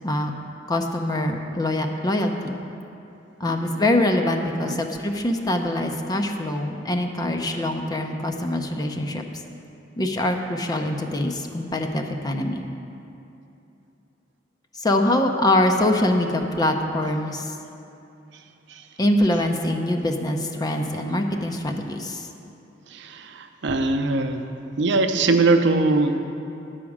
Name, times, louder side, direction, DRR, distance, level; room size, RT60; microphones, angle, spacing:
voice 1, 0.7-2.6 3.4-9.2 10.0-12.6 14.8-17.5 19.0-22.3, left 1 dB, 20° left, 4 dB, 0.6 m, -24 dB
voice 2, 22.9-24.4 24.8-26.2, right 3 dB, 65° right, 6 dB, 0.6 m, -21 dB
9.7 x 5.0 x 7.2 m, 2.7 s
head